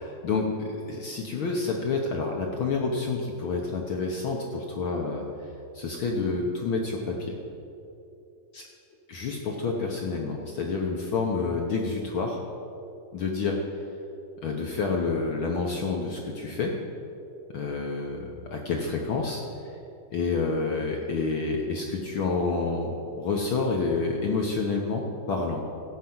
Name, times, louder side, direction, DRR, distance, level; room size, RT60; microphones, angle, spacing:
voice 1, 0.2-5.2 5.7-7.3 8.5-8.6 9.1-12.4 13.1-13.6 14.4-16.7 17.5-19.4 20.1-25.6, left 4 dB, 75° left, 1 dB, 1.2 m, -28 dB
16.0 x 5.7 x 7.8 m, 2.7 s
omnidirectional pair, 3.6 m